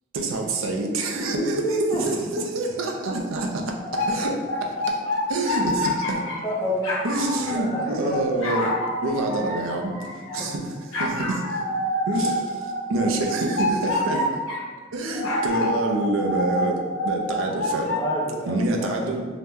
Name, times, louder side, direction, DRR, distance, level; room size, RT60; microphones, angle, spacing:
voice 1, 0.1-5.0 5.3-6.3 7.0-8.7 9.0-11.6 12.1-14.4 14.9-18.0 18.5-19.3, right 2 dB, 80° right, 1 dB, 0.4 m, -27 dB
voice 2, 1.1-2.2 6.4-7.0 7.5-8.2 10.4-10.5 18.0-19.0, equal, 20° left, -4 dB, 0.5 m, -28 dB
sound 1, 3.8-6.5 6.8-10.5 10.9-14.7 15.1-18.0, left 1 dB, 85° left, 0.6 m, -27 dB
2.8 x 2.0 x 3.5 m, 1.4 s
head